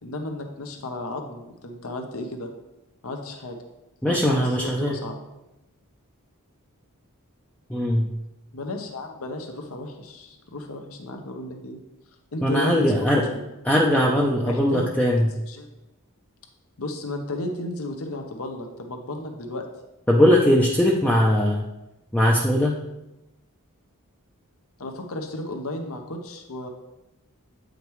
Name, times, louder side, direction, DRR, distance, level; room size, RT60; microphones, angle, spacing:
voice 1, 0.0-2.5 3.0-3.6 4.1-5.2 8.5-11.8 12.3-13.4 14.4-14.9 15.5-15.7 16.8-19.7 24.8-26.7, left 1 dB, 65° left, 4 dB, 0.8 m, -33 dB
voice 2, 4.0-5.0 7.7-8.1 12.4-13.2 13.6-15.3 20.1-21.6 22.1-22.7, equal, 5° left, -3 dB, 0.5 m, -20 dB
8.4 x 5.1 x 3.1 m, 0.96 s
head